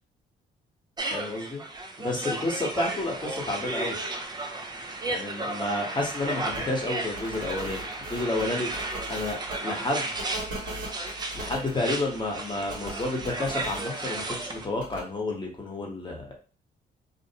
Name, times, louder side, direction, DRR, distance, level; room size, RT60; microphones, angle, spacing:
sound 1, 1.0-14.7, right 2 dB, 20° right, 0.4 m, -34 dB
voice 1, 1.1-1.6 2.0-4.0 5.1-8.7 9.1-10.2 11.3-16.3, left 2 dB, 25° left, -1 dB, 1.0 m, -30 dB
sound 2, 6.5-6.6 7.1-9.6 10.2-11.7 12.7-13.8 14.8-15.0, right 1 dB, 70° right, 1.3 m, -38 dB
2.5 x 2.0 x 2.7 m, 0.36 s
cardioid pair, 90°, 20 cm